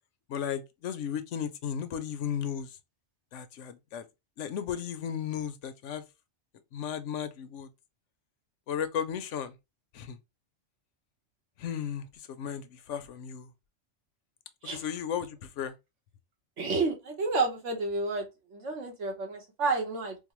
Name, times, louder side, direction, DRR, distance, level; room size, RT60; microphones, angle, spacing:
voice 1, 0.3-2.7 3.3-4.0 4.4-6.0 6.7-7.7 8.7-9.5 9.9-10.2 11.6-13.5 14.6-15.7, left 8 dB, 90° left, 1.0 m, -35 dB
voice 2, 16.6-18.3 18.5-20.2, right 3 dB, 85° right, 1.4 m, -30 dB
4.5 x 2.1 x 3.0 m
omnidirectional pair, 1.2 m